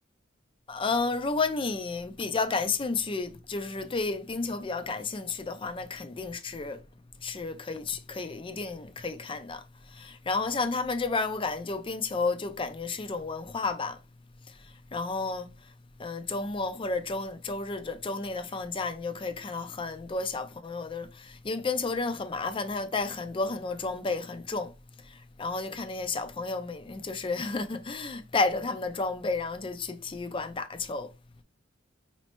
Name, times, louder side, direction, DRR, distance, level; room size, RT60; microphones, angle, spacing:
voice 1, 0.7-6.8 7.2-14.0 14.5-15.7 16.0-24.7 25.0-31.1, left 3 dB, 25° left, 0.4 m, -32 dB
4.3 x 3.1 x 2.9 m
head